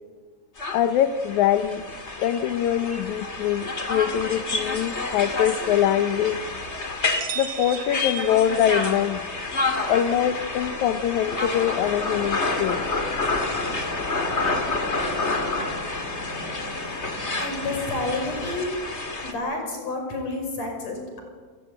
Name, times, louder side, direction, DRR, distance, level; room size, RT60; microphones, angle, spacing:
sound 1, 0.6-19.3, left 3 dB, 25° left, 2.2 m, -29 dB
voice 1, 0.7-1.8 2.2-6.4 7.4-9.2 9.9-12.8, left 10 dB, 85° left, 10 dB, 2.3 m, -23 dB
sound 2, 7.2-9.0, right 7 dB, 60° right, 2.6 m, -36 dB
voice 2, 17.4-18.7 19.2-21.2, left 2 dB, 65° left, 3 dB, 6.7 m, -29 dB
29.0 x 16.0 x 9.0 m, 1.5 s
omnidirectional pair, 3.3 m